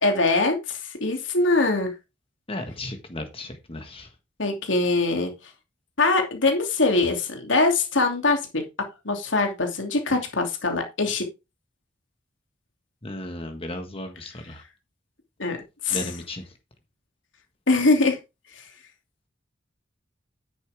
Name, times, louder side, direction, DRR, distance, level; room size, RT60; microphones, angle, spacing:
voice 1, 0.0-1.9 4.4-5.3 6.0-8.6 9.0-11.3 15.4-15.6 15.8-16.1 17.7-18.2, left 3 dB, 80° left, 2.8 m, -22 dB
voice 2, 2.5-4.1 13.0-14.6 15.9-16.5, left 1 dB, 30° left, 1.5 m, -35 dB
10.5 x 8.4 x 3.5 m
head